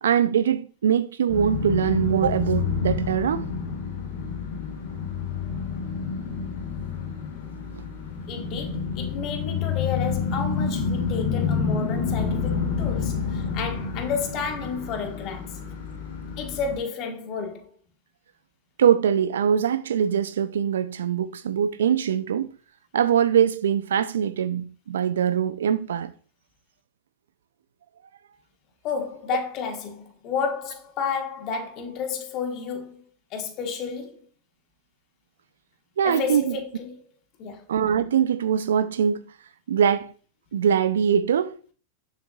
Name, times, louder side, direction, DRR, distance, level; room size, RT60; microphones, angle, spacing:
voice 1, 0.0-3.5 18.8-22.5 22.9-26.1 36.0-36.6 37.7-39.2 39.7-40.1 40.5-41.7, right 8 dB, 75° right, 0.4 m, -22 dB
sound 1, 1.3-16.8, left 5 dB, 65° left, 1.7 m, -29 dB
voice 2, 8.3-15.6 16.4-17.7 28.8-33.0 33.3-34.2 36.0-37.0 37.4-37.6, left 6 dB, 45° left, 1.4 m, -31 dB
6.6 x 6.4 x 2.4 m
hypercardioid pair, 95°, 0 cm